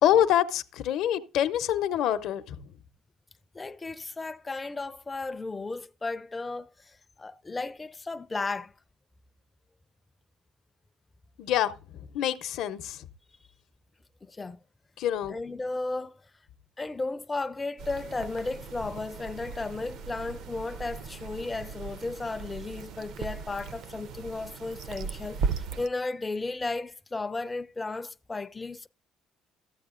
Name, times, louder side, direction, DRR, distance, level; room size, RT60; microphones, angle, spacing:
voice 1, 0.0-2.6 11.4-11.7 12.1-13.0 15.0-15.4, left 11 dB, 70° left, 0.7 m, -25 dB
voice 2, 3.5-8.7 14.2-14.6 15.3-16.2 16.8-28.9, left 3 dB, 15° left, 0.4 m, -34 dB
sound 1, 17.8-25.9, right 5 dB, 60° right, 0.5 m, -37 dB
13.5 x 8.0 x 2.5 m
cardioid pair, 140°, 0 cm